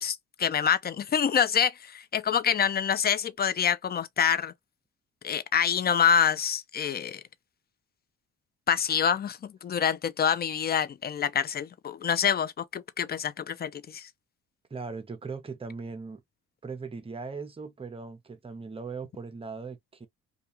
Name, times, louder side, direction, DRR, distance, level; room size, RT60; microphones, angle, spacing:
voice 1, 0.0-4.5 5.2-7.2 8.7-14.1, left 8 dB, 35° left, 0.4 m, -26 dB
voice 2, 14.7-16.2 16.6-20.1, right 4 dB, 20° right, 0.7 m, -39 dB
2.3 x 2.3 x 2.9 m
cardioid pair, 90°, 30 cm